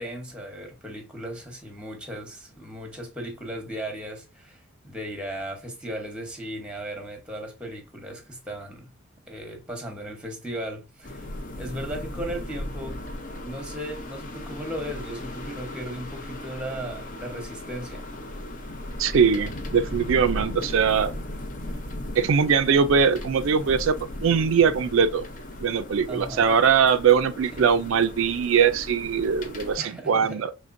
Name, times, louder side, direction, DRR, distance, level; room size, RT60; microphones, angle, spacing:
voice 1, 0.0-8.9 9.3-11.3 11.6-13.0 13.4-18.0 26.1-26.6 27.5-27.7 29.8-30.4, equal, 5° right, 1.0 m, -36 dB
sound 1, 11.0-29.8, left 1 dB, 40° left, 0.7 m, -37 dB
voice 2, 19.0-21.1 22.2-24.0 24.2-25.2 25.6-30.5, right 6 dB, 70° right, 0.4 m, -21 dB
5.0 x 3.2 x 2.6 m
head